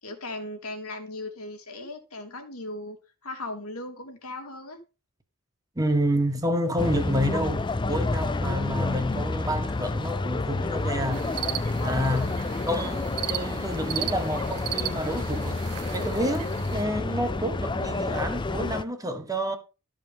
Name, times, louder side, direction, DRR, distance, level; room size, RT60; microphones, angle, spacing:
voice 1, 0.0-4.8 11.8-12.3, left 2 dB, 70° left, 2.5 m, -38 dB
voice 2, 5.7-11.3 11.8-15.6 15.9-19.6, equal, 15° right, 1.7 m, -29 dB
sound 1, 6.8-18.8, left 2 dB, 20° left, 0.4 m, -29 dB
sound 2, 11.1-16.8, right 11 dB, 80° right, 0.7 m, -36 dB
13.0 x 5.1 x 5.4 m
head